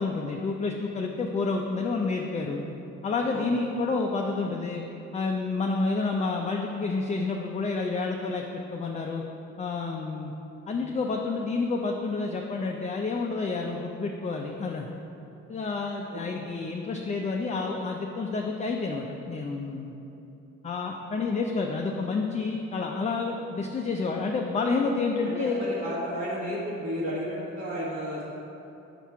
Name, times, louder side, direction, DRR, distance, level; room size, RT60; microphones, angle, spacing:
voice 1, 0.0-2.6 3.0-4.8 5.1-9.2 9.6-10.3 10.7-14.9 15.5-19.9 20.6-25.6, left 3 dB, 25° left, 1 dB, 0.4 m, -29 dB
voice 2, 16.1-16.4 25.2-28.2, equal, 45° right, -9 dB, 1.2 m, -33 dB
6.0 x 4.2 x 4.6 m, 3.0 s
cardioid pair, 90°, 30 cm